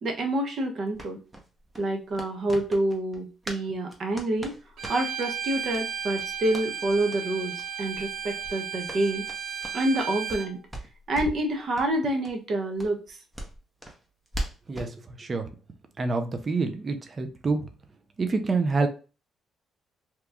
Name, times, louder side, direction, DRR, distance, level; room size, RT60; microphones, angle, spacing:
voice 1, 0.0-1.2 1.8-4.5 4.9-9.3 9.7-10.6 11.1-13.2, right 1 dB, 55° right, 3 dB, 0.9 m, -27 dB
sound 1, 0.9-3.6 3.9-5.3 5.7-5.8 6.1-6.7 7.1-7.2 7.5-7.7 7.9-8.1 8.4-10.4 10.7-11.5 11.7-11.9 12.2-12.3 12.8-14.9, right 1 dB, 15° right, 0.9 m, -39 dB
Bowed string instrument, 4.8-10.5, right 7 dB, 80° right, 0.6 m, -34 dB
voice 2, 14.7-15.5 16.0-17.7 18.2-18.9, right 3 dB, 35° right, 7 dB, 0.5 m, -27 dB
2.9 x 2.4 x 3.5 m, 0.33 s
cardioid pair, 90°, 0 cm